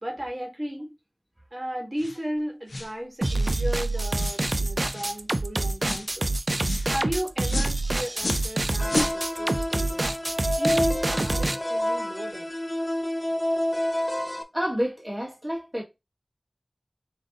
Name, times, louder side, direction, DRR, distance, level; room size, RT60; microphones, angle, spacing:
voice 1, 0.0-0.9 1.5-6.3 6.8-10.1 10.6-12.5, equal, 40° right, 1.8 m, -34 dB
sound 1, 2.0-2.2 2.7-2.9 3.4-3.6 4.1-4.4 4.9-5.2 5.8-6.1 6.6-6.9 7.5-7.8 8.2-8.5 8.9-9.2, left 2 dB, 80° left, 0.5 m, -31 dB
sound 2, 3.2-11.6, right 2 dB, 55° right, 0.4 m, -26 dB
sound 3, 8.8-14.4, left 1 dB, 30° left, 0.7 m, -28 dB
voice 2, 14.5-15.8, equal, 15° right, 1.8 m, -29 dB
5.0 x 2.7 x 3.8 m
wide cardioid pair, 45°, 0 cm